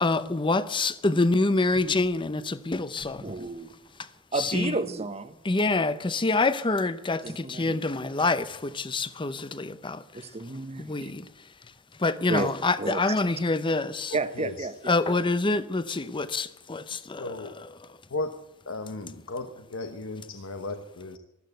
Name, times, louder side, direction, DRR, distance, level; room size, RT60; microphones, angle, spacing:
voice 1, 0.0-3.3 4.4-4.8 5.5-10.0 10.8-11.2 12.0-14.1 14.9-17.2, left 3 dB, 25° left, 0.7 m, -26 dB
voice 2, 3.2-3.7 4.3-5.4 7.2-7.8 10.1-11.1 12.3-13.2 14.1-15.2, right 2 dB, 30° right, 0.9 m, -32 dB
voice 3, 14.1-15.0 17.2-17.6 18.1-18.3 18.7-21.2, left 2 dB, 70° left, 1.0 m, -36 dB
14.0 x 12.5 x 8.0 m
head